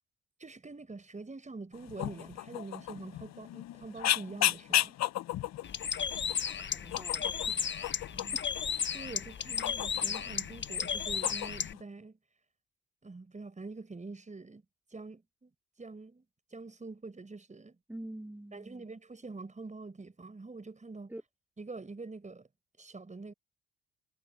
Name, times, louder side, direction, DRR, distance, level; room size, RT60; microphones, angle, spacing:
voice 1, 0.4-4.9 8.1-8.4 8.9-12.2 13.0-14.6 14.9-15.5 15.8-16.2 16.5-17.8 18.5-21.1 21.6-22.5 22.8-23.3, right 3 dB, 25° right, 5.6 m, -45 dB
sound 1, 1.7-11.8, left 14 dB, 60° left, 1.2 m, -36 dB
Bird, 5.6-11.7, left 7 dB, 35° left, 1.4 m, -34 dB
voice 2, 6.7-7.7 8.3-8.4 17.9-18.9 21.1-21.2, right 1 dB, 5° right, 4.1 m, -46 dB
hypercardioid pair, 50°, 30 cm